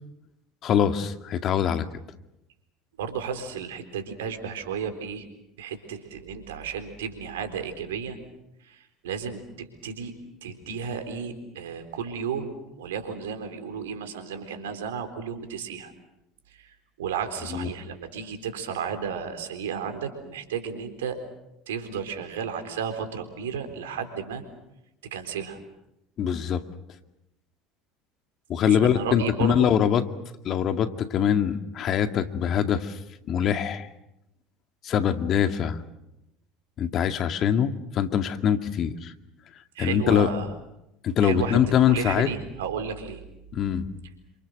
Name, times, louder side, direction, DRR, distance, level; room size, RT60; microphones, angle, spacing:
voice 1, 0.6-1.9 17.5-17.7 26.2-26.6 28.5-30.1 30.4-33.0 33.3-33.9 34.8-35.8 36.8-39.1 39.8-40.3 41.0-42.3 43.5-43.9, left 9 dB, 50° left, 8 dB, 2.1 m, -23 dB
voice 2, 3.0-5.3 5.6-8.2 8.6-10.1 10.4-15.9 16.5-21.2 21.7-24.4 25.1-25.6 28.6-29.7 39.8-40.5 41.2-43.2, right 7 dB, 80° right, 7 dB, 4.0 m, -33 dB
29.0 x 27.0 x 6.6 m, 0.87 s
hypercardioid pair, 70°, 0 cm